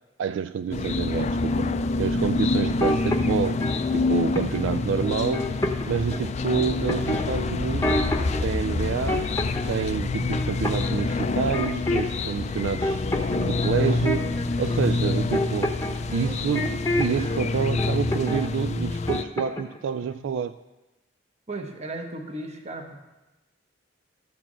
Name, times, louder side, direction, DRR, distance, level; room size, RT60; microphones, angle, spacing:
voice 1, 0.2-1.7 2.0-3.6 3.9-5.5 5.8-8.1 8.4-9.3 9.7-13.0 13.4-15.8 16.1-20.5, right 7 dB, 75° right, 0.3 m, -28 dB
sound 1, 0.7-19.2, left 3 dB, 35° left, 0.4 m, -27 dB
sound 2, 2.7-3.8 4.4-4.7 5.0-6.3 6.9-8.4 8.8-9.7 10.0-12.2 12.5-17.4 17.8-18.5 18.7-19.8 20.0-20.3, left 1 dB, 15° left, 0.8 m, -29 dB
voice 2, 21.5-23.0, right 2 dB, 35° right, 1.1 m, -35 dB
13.5 x 4.5 x 7.4 m
head